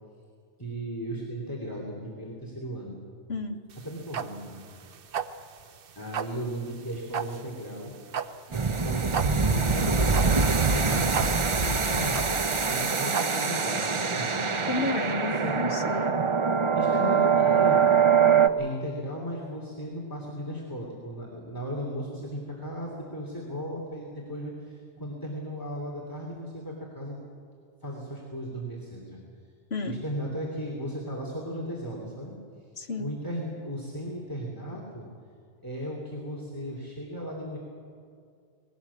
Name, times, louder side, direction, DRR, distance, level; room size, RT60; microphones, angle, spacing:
voice 1, 0.6-3.0 3.8-5.0 6.0-7.9 8.5-14.5 15.4-15.6 16.7-27.2 27.8-29.2 29.8-32.3 33.0-35.1 35.6-37.6, equal, 20° left, -2 dB, 3.0 m, -36 dB
sound 1, 3.7-13.7, right 7 dB, 60° right, 0.9 m, -35 dB
sound 2, 8.5-18.5, right 5 dB, 30° right, 0.7 m, -24 dB
voice 2, 14.7-16.2 29.7-30.0 32.8-33.1, left 3 dB, 65° left, 4 dB, 1.7 m, -31 dB
20.5 x 18.5 x 8.4 m, 2.3 s
omnidirectional pair, 1.1 m